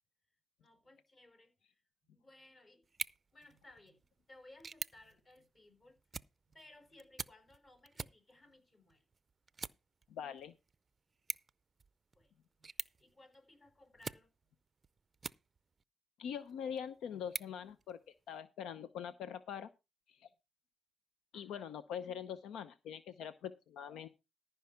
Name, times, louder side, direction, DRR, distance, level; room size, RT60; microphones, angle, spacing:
voice 1, 0.6-1.8 2.1-2.9 3.3-6.0 6.5-9.0 12.1-12.3 12.6-12.7 13.0-14.3 21.3-21.7, left 2 dB, 35° left, 5.5 m, -61 dB
sound 1, 2.8-15.8 16.3-18.4, right 4 dB, 30° right, 0.5 m, -49 dB
voice 2, 10.1-10.5 16.2-18.0 18.3-19.7 20.1-20.3 21.3-24.1, left 8 dB, 80° left, 0.7 m, -43 dB
14.0 x 5.6 x 5.7 m
cardioid pair, 90°, 0 cm